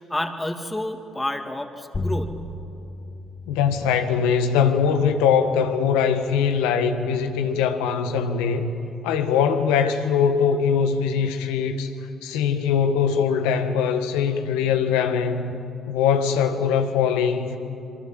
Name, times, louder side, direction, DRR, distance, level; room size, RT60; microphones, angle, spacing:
voice 1, 0.0-2.5, left 1 dB, 15° left, 6 dB, 2.8 m, -29 dB
sound 1, 1.9-7.0, left 2 dB, 40° left, 2.6 m, -36 dB
voice 2, 3.5-8.7 9.0-11.9 12.2-15.6 15.9-17.6, left 7 dB, 85° left, 7 dB, 1.7 m, -22 dB
26.5 x 24.5 x 7.8 m, 2.7 s
hypercardioid pair, 55°, 0 cm